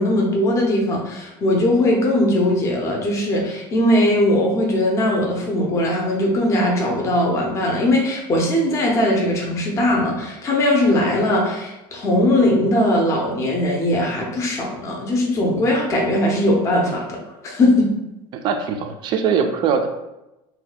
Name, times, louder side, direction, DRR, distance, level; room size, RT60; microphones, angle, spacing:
voice 1, 0.0-17.9, left 1 dB, 20° left, -1 dB, 0.6 m, -19 dB
voice 2, 18.3-19.9, right 6 dB, 35° right, 6 dB, 0.4 m, -21 dB
2.7 x 2.2 x 3.9 m, 0.95 s
cardioid pair, 160°, 13 cm